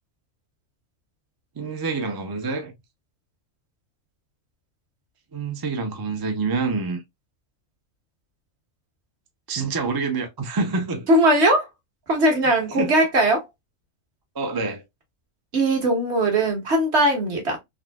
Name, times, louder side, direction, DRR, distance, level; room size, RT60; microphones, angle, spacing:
voice 1, 1.6-2.7 5.3-7.0 9.5-11.1 12.8-12.9 14.3-14.8, right 4 dB, 30° right, 0.4 m, -27 dB
voice 2, 11.1-11.7 12.1-13.5 15.5-17.6, right 1 dB, 60° right, 1.5 m, -19 dB
3.6 x 2.6 x 2.2 m
omnidirectional pair, 1.3 m